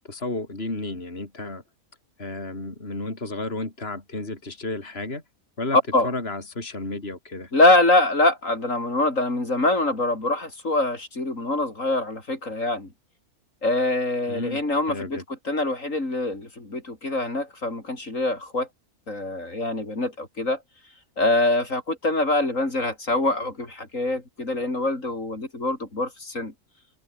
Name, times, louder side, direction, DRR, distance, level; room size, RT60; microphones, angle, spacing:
voice 1, 0.1-1.6 2.2-5.2 5.6-5.8 6.0-7.5 14.3-14.6 14.9-15.2, left 2 dB, 40° left, 4.5 m, -32 dB
voice 2, 5.7-6.1 7.5-12.9 13.6-18.7 19.1-20.6 21.2-26.5, left 2 dB, 60° left, 5.5 m, -24 dB
open air
omnidirectional pair, 1.5 m